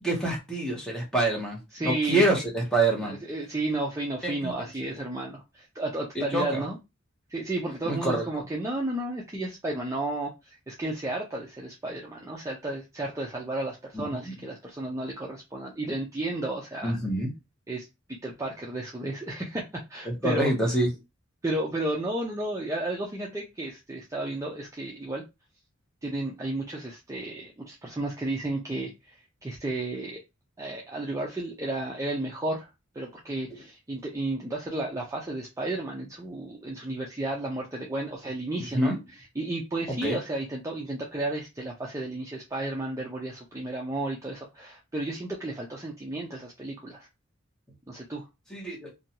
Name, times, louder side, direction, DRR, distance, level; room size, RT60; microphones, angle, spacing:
voice 1, 0.0-3.1 4.2-4.5 4.8-4.9 6.2-6.6 7.9-8.3 13.9-14.0 16.8-17.3 20.1-20.9 33.5-33.6 38.7-39.0 39.9-40.2 48.5-48.9, right 1 dB, 5° left, 0.8 m, -26 dB
voice 2, 1.7-2.3 3.0-6.8 7.3-17.0 17.7-19.6 19.9-20.8 21.4-25.2 26.0-29.1 29.4-30.2 30.6-32.7 32.9-47.1 47.9-48.3, right 2 dB, 15° right, 0.4 m, -33 dB
2.6 x 2.2 x 2.8 m
head